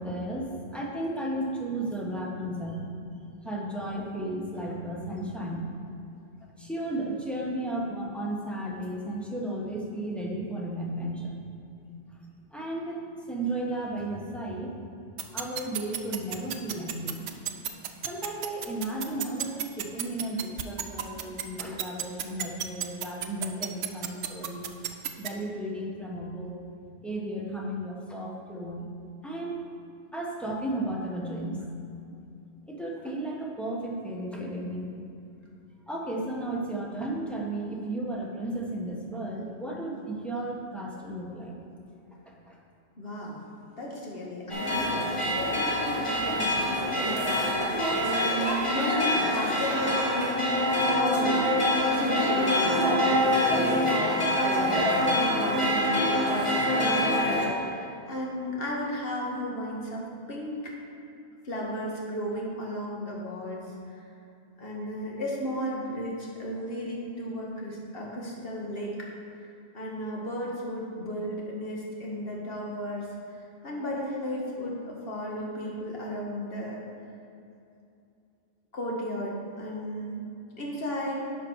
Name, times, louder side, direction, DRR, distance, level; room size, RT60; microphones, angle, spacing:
voice 1, 0.0-3.0 3.4-5.7 6.6-11.3 12.5-14.8 15.3-17.7 18.0-24.7 25.2-26.6 27.0-28.8 29.2-29.7 30.1-31.6 32.7-34.9 35.9-41.5 42.3-42.6, right 1 dB, ahead, -3 dB, 1.1 m, -34 dB
sound 1, 15.2-25.3, right 11 dB, 90° right, 0.9 m, -31 dB
voice 2, 43.0-43.5 43.8-60.7 61.4-64.0 64.6-69.1 69.7-73.1 73.3-76.8 78.7-80.3 80.6-81.3, equal, 55° left, -3 dB, 1.7 m, -34 dB
sound 2, 44.5-57.5, equal, 25° left, 1.6 m, -25 dB
10.5 x 5.2 x 4.7 m, 2.6 s
omnidirectional pair, 1.2 m